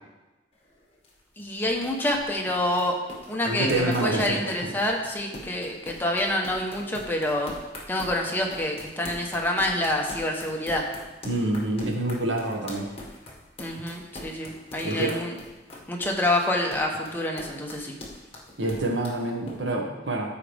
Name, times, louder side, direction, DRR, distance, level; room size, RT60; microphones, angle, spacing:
sound 1, 0.5-19.6, left 1 dB, 30° left, 1.8 m, -43 dB
voice 1, 1.4-2.9 3.3-7.5 7.9-10.8 13.6-15.4 15.9-17.9, left 1 dB, 10° left, 0 dB, 1.1 m, -27 dB
voice 2, 3.4-4.4 11.2-12.9 14.8-15.2 18.6-20.3, right 1 dB, 85° right, 0 dB, 1.6 m, -27 dB
14.5 x 5.0 x 3.5 m, 1.1 s
head